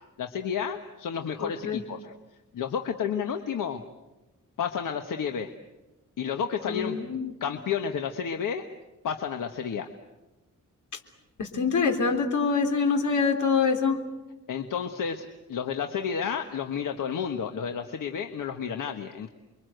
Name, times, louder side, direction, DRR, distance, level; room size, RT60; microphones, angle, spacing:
voice 1, 0.2-2.1 2.5-3.8 4.6-5.5 6.2-7.0 7.4-8.6 9.0-9.9 14.5-19.3, left 7 dB, 85° left, 5 dB, 1.5 m, -31 dB
voice 2, 1.4-1.8 6.6-7.3 10.9-11.0 11.4-14.0, left 5 dB, 70° left, 5 dB, 3.6 m, -25 dB
29.5 x 23.5 x 8.0 m, 1.0 s
wide cardioid pair, 145°, 31 cm